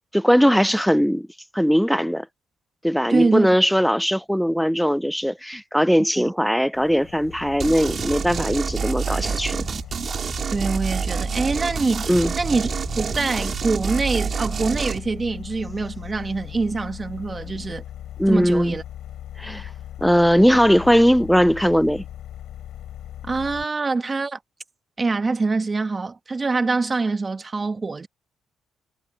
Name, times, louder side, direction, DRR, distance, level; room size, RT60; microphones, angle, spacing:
voice 1, 0.1-1.3 1.5-2.3 2.8-9.7 12.1-12.3 18.2-18.8 19.4-19.7 20.0-22.0, equal, ahead, 0.5 m, -19 dB
voice 2, 3.1-3.5 6.2-6.3 10.5-12.7 12.9-17.8 18.3-18.8 23.2-24.4 25.0-28.1, right 3 dB, 30° right, 1.7 m, -24 dB
sound 1, 6.7-23.7, left 12 dB, 80° left, 5.3 m, -39 dB
sound 2, 7.6-15.0, right 6 dB, 45° right, 4.7 m, -27 dB
cardioid pair, 90°, 0 cm